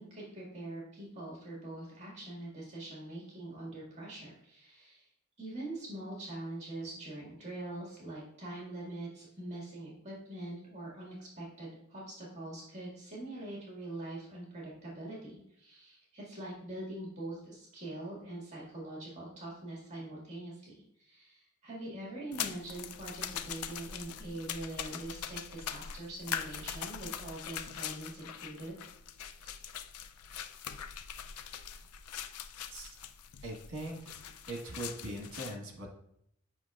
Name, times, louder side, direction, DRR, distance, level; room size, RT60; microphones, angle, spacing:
voice 1, 0.0-5.1 5.4-28.8, right 1 dB, 30° right, -4 dB, 1.8 m, -43 dB
sound 1, 22.3-35.6, left 8 dB, 80° left, 0.4 m, -42 dB
voice 2, 33.4-34.0 34.5-36.1, right 1 dB, 60° right, 1 dB, 1.4 m, -41 dB
7.7 x 5.8 x 2.4 m, 0.74 s
head